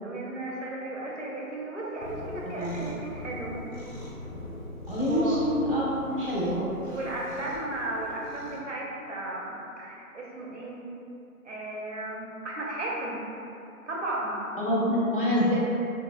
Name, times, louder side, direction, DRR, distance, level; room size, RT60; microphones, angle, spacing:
voice 1, 0.0-3.6 5.0-5.4 6.9-10.8 11.4-13.2 13.9-14.4, right 1 dB, 55° right, -3 dB, 0.5 m, -35 dB
Cat, 2.0-8.6, left 1 dB, 65° left, 1.1 m, -42 dB
voice 2, 2.4-2.8 4.9-7.0 14.6-15.5, equal, 40° left, -10 dB, 0.5 m, -26 dB
2.9 x 2.1 x 2.4 m, 2.8 s
hypercardioid pair, 175°, 44 cm